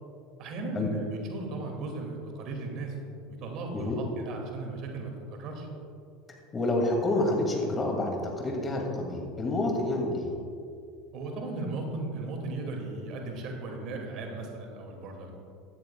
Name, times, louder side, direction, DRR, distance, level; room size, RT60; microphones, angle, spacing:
voice 1, 0.4-5.7 11.1-15.3, right 2 dB, 50° right, 2 dB, 2.4 m, -36 dB
voice 2, 6.5-10.3, left 2 dB, 25° left, 1 dB, 2.4 m, -28 dB
15.5 x 12.5 x 2.4 m, 2.4 s
hypercardioid pair, 75°, 0 cm